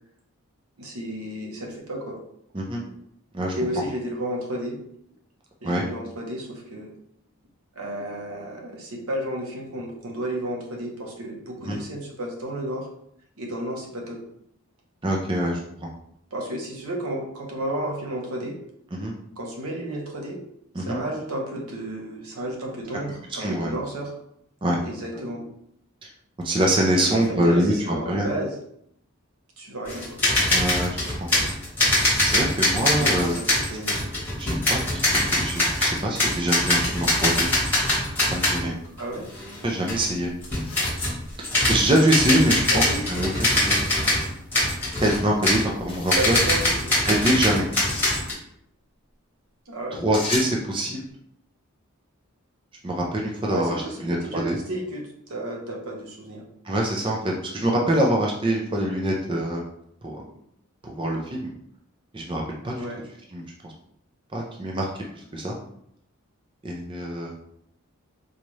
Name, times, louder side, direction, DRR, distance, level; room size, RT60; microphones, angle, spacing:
voice 1, 0.8-2.2 3.5-4.8 5.6-6.9 7.7-12.9 13.4-14.2 16.3-18.6 19.4-20.4 20.8-24.1 24.8-25.5 27.0-28.5 29.6-30.2 32.9-34.0 39.0-39.2 42.7-43.5 46.2-47.0 49.7-50.0 53.5-56.4 62.7-63.0, right 1 dB, 85° right, -1 dB, 0.9 m, -32 dB
voice 2, 15.0-15.9 18.9-19.1 20.7-21.0 23.4-23.7 24.6-24.8 26.4-27.7 28.1-28.3 30.5-31.3 32.2-33.3 34.4-37.5 38.3-38.8 39.6-40.3 41.4-43.8 45.0-46.4 47.0-47.7 50.0-51.0 52.8-53.8 54.0-54.6 56.6-59.6 60.0-60.1 60.8-61.5 62.1-62.8 63.3-63.7 64.3-64.9 65.2-65.5 66.6-67.3, right 1 dB, 25° right, -1 dB, 0.4 m, -24 dB
sound 1, 29.9-38.7 39.0-39.1 39.3-39.6 39.9-40.0 40.4-41.2 41.4-48.3, left 1 dB, 10° left, 1.2 m, -23 dB
sound 2, 40.4-42.0 43.4-44.0 45.6-46.3 47.6-48.2 50.1-50.6, left 3 dB, 25° left, 0.6 m, -36 dB
4.0 x 2.4 x 3.1 m, 0.72 s
head